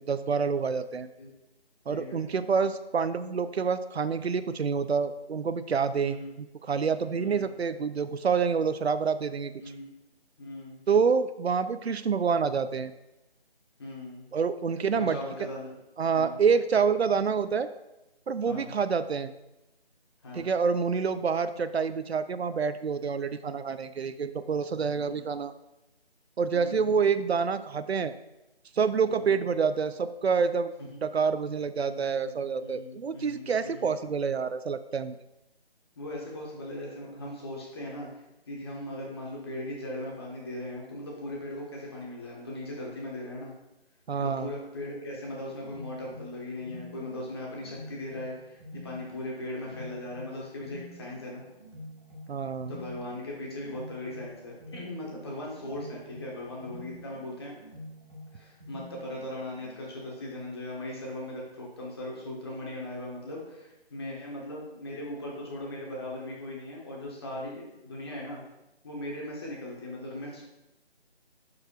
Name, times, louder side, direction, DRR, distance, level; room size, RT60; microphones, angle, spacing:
voice 1, 0.1-1.1 1.9-9.5 10.9-12.9 14.3-15.2 16.0-17.7 18.3-19.3 20.3-25.5 26.4-28.1 28.7-30.7 31.0-35.2 44.1-44.5 52.3-52.7, right 5 dB, 80° right, 12 dB, 0.6 m, -27 dB
voice 2, 1.9-2.2 6.0-6.3 7.2-7.4 9.6-9.9 10.4-10.8 13.8-14.3 14.9-15.7 16.1-16.4 18.4-18.7 20.2-20.4 25.0-25.2 26.5-26.9 29.1-29.4 31.8-32.3 32.6-33.9 36.0-43.5 44.2-51.4 52.7-57.5 58.3-68.4 68.8-70.4, left 1 dB, 25° left, -4 dB, 1.5 m, -39 dB
sound 1, 45.2-60.1, equal, 25° right, 1.6 m, -47 dB
11.5 x 4.8 x 2.5 m, 0.93 s
figure-of-eight pair, 170°, 31 cm